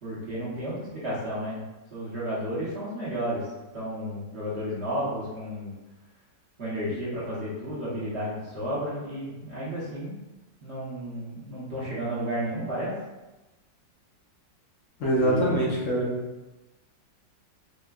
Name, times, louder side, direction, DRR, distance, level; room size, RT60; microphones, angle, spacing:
voice 1, 0.0-1.6 1.9-3.4 3.7-5.7 6.6-10.2 10.6-12.9 15.2-15.7, equal, 50° right, -9 dB, 0.9 m, -32 dB
voice 2, 15.0-16.2, right 1 dB, 65° left, -4 dB, 0.8 m, -24 dB
4.3 x 2.1 x 2.3 m, 1.1 s
omnidirectional pair, 1.9 m